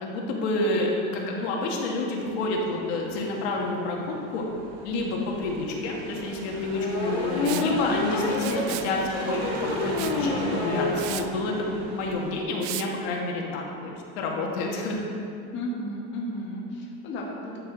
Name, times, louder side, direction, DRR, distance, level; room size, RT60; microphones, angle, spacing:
voice 1, 0.0-4.4 4.8-9.4 9.8-13.9 14.2-15.0, left 2 dB, 75° left, -1 dB, 1.7 m, -29 dB
voice 2, 1.1-1.4 9.2-9.5 15.5-17.6, left 1 dB, 35° left, -3 dB, 1.4 m, -34 dB
sound 1, 2.2-12.4, right 4 dB, 80° right, 1.1 m, -38 dB
sound 2, 5.4-5.5 6.7-11.0 11.4-11.5 11.8-11.9 12.1-12.3, left 3 dB, 60° left, 1.6 m, -28 dB
Liquid, 7.4-7.7 8.3-8.9 10.0-10.2 10.6-10.7 11.0-11.3 12.6-12.9, right 14 dB, 55° right, 0.5 m, -35 dB
11.5 x 6.9 x 3.9 m, 2.6 s
supercardioid pair, 160°, 32 cm